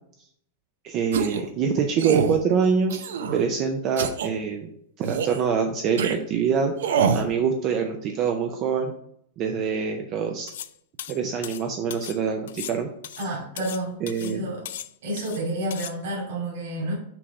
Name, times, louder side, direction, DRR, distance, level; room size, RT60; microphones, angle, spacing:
voice 1, 0.8-4.7 5.0-6.7 7.1-8.9 9.4-10.5 11.1-12.9 14.0-14.5, right 6 dB, 25° right, 4 dB, 0.4 m, -25 dB
sound 1, 1.1-1.5 2.0-2.4 2.9-3.4 4.0-4.3 5.0-5.4 6.0-6.2 6.8-7.3, right 6 dB, 80° right, 0.6 m, -25 dB
sound 2, 10.5-10.7 11.0-12.2 12.5-13.8 14.1-14.4 14.7-15.4 15.7-16.0, left 11 dB, 60° left, 0.3 m, -38 dB
voice 2, 13.2-14.7 15.0-16.9, right 1 dB, 60° right, -3 dB, 2.6 m, -30 dB
6.0 x 3.3 x 4.9 m, 0.69 s
supercardioid pair, 180°, 0 cm